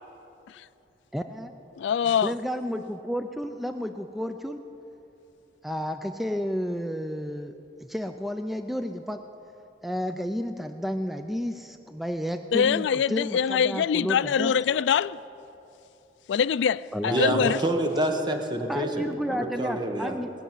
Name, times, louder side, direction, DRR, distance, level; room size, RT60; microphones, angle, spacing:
voice 1, 1.1-1.5 2.2-4.6 5.6-7.5 7.8-9.2 9.8-14.5 16.9-17.5 18.7-20.3, equal, ahead, 0.4 m, -31 dB
voice 2, 1.8-2.3 12.5-15.2 16.3-17.6, left 7 dB, 80° left, 0.3 m, -24 dB
voice 3, 17.1-20.1, right 1 dB, 25° right, 1.2 m, -27 dB
20.0 x 6.7 x 9.1 m
head